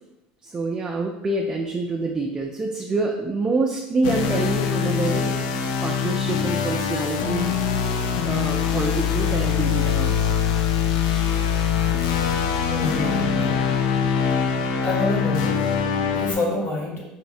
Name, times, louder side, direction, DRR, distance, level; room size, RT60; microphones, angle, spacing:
voice 1, 0.4-5.4 5.8-7.6 8.2-10.4, right 3 dB, 20° right, -1 dB, 0.3 m, -26 dB
sound 1, 4.0-16.3, left 7 dB, 90° left, 0.3 m, -23 dB
voice 2, 12.7-13.6 14.5-15.6 16.1-17.0, left 2 dB, 55° left, -2 dB, 1.1 m, -27 dB
5.5 x 2.0 x 2.6 m, 0.92 s
supercardioid pair, 130°, 4 cm